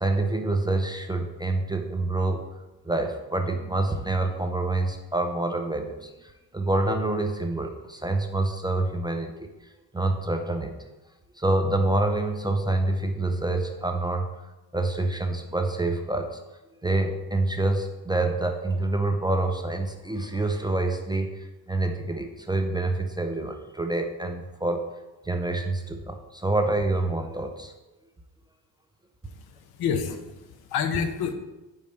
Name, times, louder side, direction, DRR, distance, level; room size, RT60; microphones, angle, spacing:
voice 1, 0.0-10.7 11.4-14.3 14.7-16.4 16.8-24.9 25.2-27.7, right 2 dB, 10° right, 4 dB, 0.4 m, -27 dB
voice 2, 29.2-31.3, left 7 dB, 75° left, 8 dB, 0.8 m, -29 dB
5.3 x 4.1 x 5.3 m, 1.1 s
cardioid pair, 115°, 38 cm